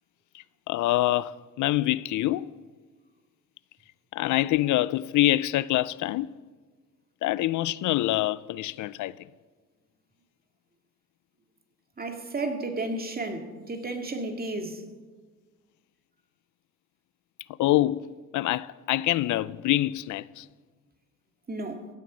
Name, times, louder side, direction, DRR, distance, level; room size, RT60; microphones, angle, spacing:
voice 1, 0.3-2.5 4.1-6.3 7.2-9.3 17.6-18.1 18.3-20.5, left 15 dB, 75° left, 0.5 m, -25 dB
voice 2, 12.0-14.8 21.5-21.9, right 2 dB, 30° right, 2.1 m, -33 dB
16.0 x 8.3 x 6.2 m
cardioid pair, 90°, 30 cm